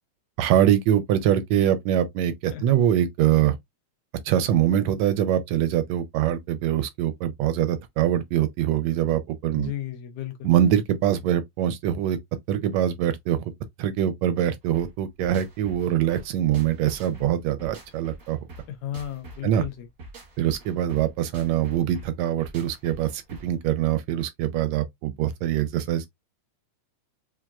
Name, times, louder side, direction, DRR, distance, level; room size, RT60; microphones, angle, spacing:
voice 1, 0.4-3.6 4.2-9.7 10.4-12.2 12.5-13.4 13.8-18.4 19.4-19.6 20.4-26.1, right 11 dB, 80° right, 1.6 m, -23 dB
voice 2, 9.6-10.5 18.7-19.9, left 11 dB, 85° left, 2.1 m, -34 dB
sound 1, 14.7-23.6, right 1 dB, 60° right, 0.8 m, -44 dB
5.8 x 2.5 x 2.3 m
omnidirectional pair, 3.3 m